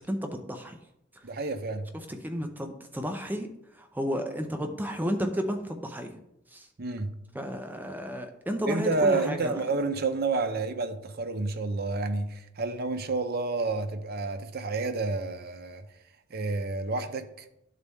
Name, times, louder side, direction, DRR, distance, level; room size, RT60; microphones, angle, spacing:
voice 1, 0.1-0.8 1.1-1.3 2.1-6.2 6.5-6.7 7.3-9.6, equal, 10° right, 0.6 m, -32 dB
voice 2, 1.2-1.9 6.8-7.2 8.7-15.9 16.3-17.5, right 3 dB, 50° right, 0.7 m, -29 dB
11.5 x 4.1 x 3.5 m
head